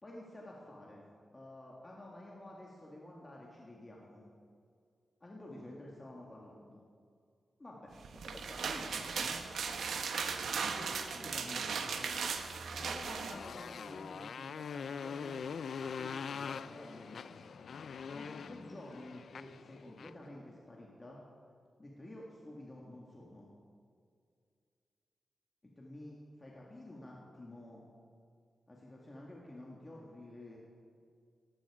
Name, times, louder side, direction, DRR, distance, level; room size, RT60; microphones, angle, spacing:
voice 1, 0.0-1.0 1.3-4.3 5.2-6.8 7.6-7.9 8.2-9.4 10.7-12.4 12.7-15.4 16.0-17.5 18.1-21.2 21.8-23.5 25.8-27.8 28.7-30.6, left 1 dB, 20° left, -3 dB, 2.0 m, -50 dB
sound 1, 8.0-13.4, right 5 dB, 90° right, 1.2 m, -37 dB
Motorcycle, 12.8-20.2, left 6 dB, 65° left, 0.3 m, -43 dB
18.5 x 14.5 x 4.9 m, 2.3 s
wide cardioid pair, 175°, 0 cm